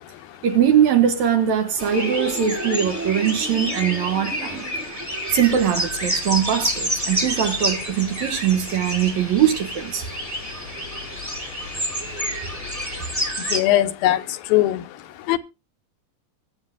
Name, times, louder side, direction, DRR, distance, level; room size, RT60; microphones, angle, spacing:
voice 1, 0.4-4.7 5.3-10.1, right 9 dB, 70° right, 1.9 m, -21 dB
sound 1, 1.8-13.6, right 1 dB, 5° right, 2.1 m, -28 dB
sound 2, 5.3-13.3, left 5 dB, 65° left, 7.3 m, -42 dB
voice 2, 13.5-14.2 14.5-14.8 15.3-15.4, left 14 dB, 90° left, 2.6 m, -18 dB
22.5 x 7.8 x 2.4 m
omnidirectional pair, 4.1 m